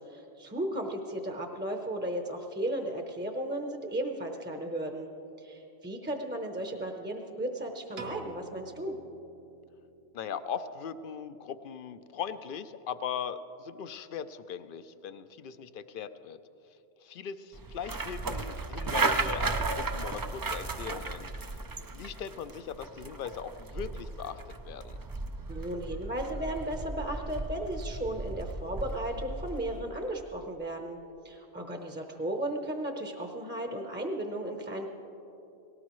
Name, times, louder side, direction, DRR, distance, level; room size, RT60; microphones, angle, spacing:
voice 1, 0.1-5.1 5.4-8.9 25.5-31.0 31.2-34.9, right 1 dB, 10° right, 3 dB, 0.7 m, -35 dB
Piano, 8.0-10.2, right 3 dB, 55° right, 1.2 m, -46 dB
voice 2, 10.1-16.4 17.0-21.5 21.9-25.0, left 7 dB, 60° left, 12 dB, 0.7 m, -39 dB
sound 1, 17.5-29.8, right 3 dB, 35° right, 0.3 m, -35 dB
18.5 x 17.5 x 3.1 m, 2.9 s
omnidirectional pair, 1.1 m